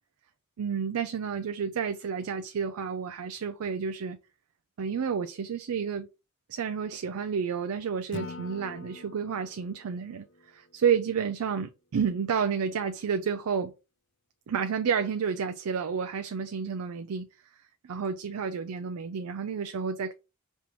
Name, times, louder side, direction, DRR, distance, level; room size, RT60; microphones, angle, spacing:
voice 1, 0.6-4.2 4.8-6.1 6.5-10.2 10.5-13.7 14.5-17.3 17.8-20.1, right 6 dB, 85° right, 0.4 m, -30 dB
Acoustic guitar / Strum, 8.1-11.3, left 4 dB, 55° left, 0.4 m, -45 dB
5.4 x 2.9 x 3.0 m
head